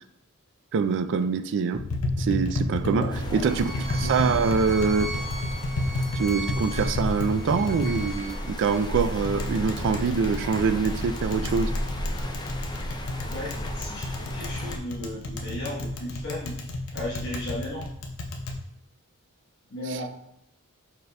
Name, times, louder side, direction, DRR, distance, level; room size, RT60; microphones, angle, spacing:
voice 1, 0.7-1.8 2.2-5.2 6.2-11.7 19.9-20.0, right 5 dB, 55° right, 0.3 m, -25 dB
Tap, 1.7-18.6, left 2 dB, 65° left, 0.7 m, -32 dB
voice 2, 2.8-3.5 4.0-4.5 13.2-17.9 19.7-20.1, left 1 dB, 50° left, 1.1 m, -36 dB
sound 1, 3.1-14.8, equal, 20° left, 0.4 m, -34 dB
Bowed string instrument, 3.4-8.8, right 1 dB, ahead, 0.9 m, -39 dB
4.9 x 4.7 x 2.2 m
head